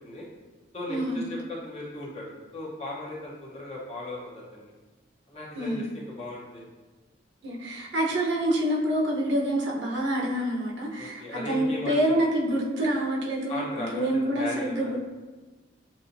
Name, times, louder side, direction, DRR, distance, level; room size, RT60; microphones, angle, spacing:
voice 1, 0.7-1.2 1.6-4.7 5.3-6.7 11.0-12.3 13.5-14.9, left 2 dB, 35° left, -5 dB, 1.1 m, -37 dB
voice 2, 5.6-5.9 7.4-15.0, right 1 dB, 80° right, -2 dB, 0.9 m, -27 dB
7.4 x 2.7 x 2.7 m, 1.3 s
head